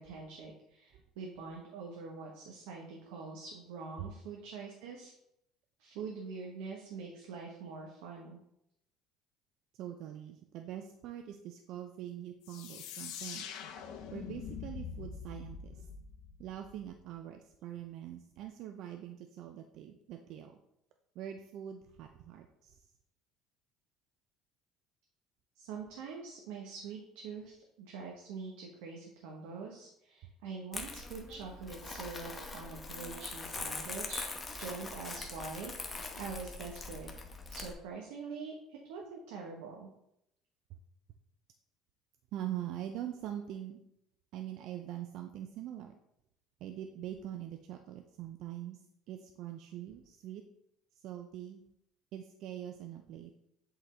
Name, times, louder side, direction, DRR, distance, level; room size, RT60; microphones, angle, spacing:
voice 1, 0.0-5.1 5.8-8.4 25.6-34.2 34.6-37.1 37.5-39.9, right 4 dB, 90° right, -1 dB, 1.0 m, -44 dB
voice 2, 9.7-13.6 14.1-15.9 16.4-20.6 21.2-22.8 42.3-43.8 44.3-45.9 46.6-48.8 49.1-50.4 50.9-51.6 52.1-53.3, right 11 dB, 65° right, 6 dB, 0.5 m, -43 dB
sound 1, 12.4-17.0, left 6 dB, 80° left, 0.7 m, -44 dB
Crumpling crinkling, 30.7-37.7, left 3 dB, 25° left, 0.9 m, -42 dB
7.9 x 3.9 x 3.3 m, 0.79 s
supercardioid pair, 105°, 0 cm